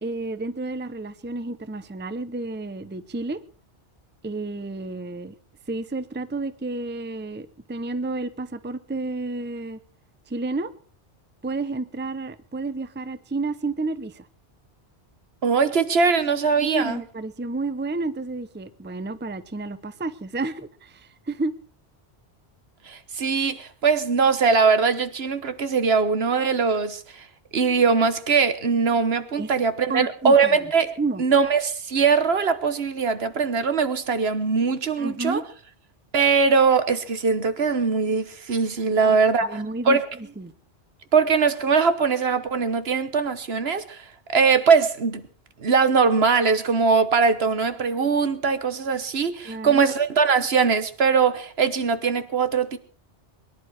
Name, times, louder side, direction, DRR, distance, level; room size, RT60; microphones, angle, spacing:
voice 1, 0.0-3.4 4.2-5.3 5.7-9.8 10.3-10.7 11.4-14.3 16.6-21.5 29.4-29.5 29.9-30.5 31.0-31.2 35.0-35.5 38.9-39.2 39.4-40.0 40.4-40.5 49.4-49.8, right 3 dB, 10° right, 0.6 m, -30 dB
voice 2, 15.4-17.0 22.9-27.3 27.5-30.9 31.2-35.4 36.1-40.1 41.1-45.2 45.6-52.8, right 5 dB, 65° right, 1.4 m, -21 dB
22.5 x 11.0 x 4.8 m
omnidirectional pair, 1.1 m